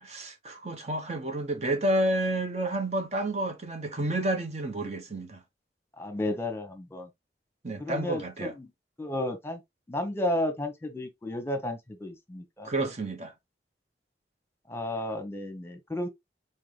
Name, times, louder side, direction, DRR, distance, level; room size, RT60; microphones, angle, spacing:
voice 1, 0.0-5.4 7.6-8.5 12.6-13.3, right 1 dB, 40° right, 0.7 m, -30 dB
voice 2, 6.0-7.1 7.8-8.7 9.0-9.6 9.9-12.7 14.7-16.1, left 1 dB, 15° left, 1.0 m, -32 dB
4.2 x 3.8 x 3.2 m
head